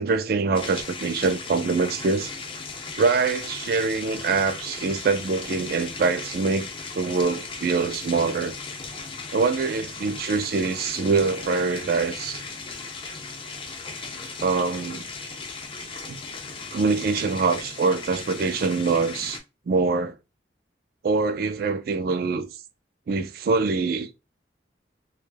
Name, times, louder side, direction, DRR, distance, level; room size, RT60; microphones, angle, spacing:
voice 1, 0.0-2.3 3.0-6.7 6.9-8.5 9.3-12.4 14.4-15.0 16.1-16.2 16.7-19.4 19.7-20.1 21.0-22.5 23.1-24.2, right 4 dB, 55° right, 0.3 m, -24 dB
sound 1, 0.5-19.4, left 4 dB, 30° left, 0.4 m, -37 dB
2.2 x 2.1 x 3.2 m
head